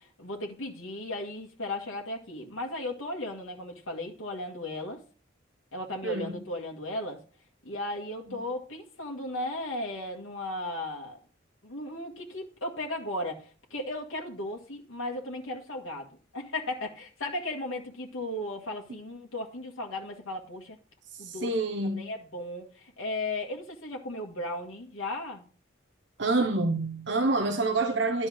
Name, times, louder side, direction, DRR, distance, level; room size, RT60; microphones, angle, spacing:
voice 1, 0.0-5.0 5.7-7.2 7.6-11.2 11.6-20.8 21.2-21.5 21.8-25.4, left 1 dB, 80° left, 1.8 m, -36 dB
voice 2, 21.1-22.0 26.2-28.3, right 2 dB, 60° right, 0.9 m, -27 dB
11.0 x 4.5 x 6.3 m
head